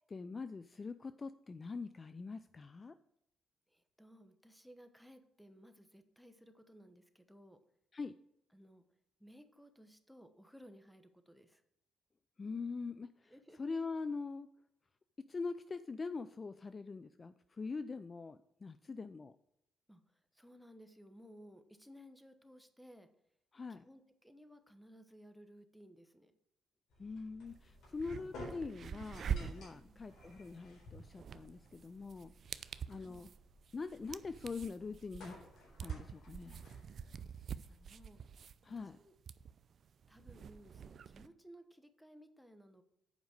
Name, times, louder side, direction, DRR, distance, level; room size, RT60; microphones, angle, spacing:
voice 1, 0.1-3.0 7.9-8.1 12.4-13.3 13.6-14.5 15.2-19.4 23.5-23.8 27.0-33.3 33.7-35.3 35.8-36.7 38.6-39.0, left 4 dB, 30° left, 13 dB, 0.4 m, -43 dB
voice 2, 3.7-7.6 8.5-8.8 9.2-11.6 13.3-13.6 18.9-19.1 19.9-20.0 20.3-23.1 23.7-26.3 29.7-30.0 33.0-33.3 37.1-37.3 37.7-38.2 38.8-39.1 40.1-42.8, equal, ahead, 9 dB, 1.1 m, -59 dB
sound 1, 26.9-38.0, left 2 dB, 75° left, 3.9 m, -56 dB
sound 2, 27.5-27.6 27.9-41.3, right 7 dB, 55° right, 0.4 m, -46 dB
8.0 x 5.2 x 6.5 m, 0.79 s
cardioid pair, 90°, 0 cm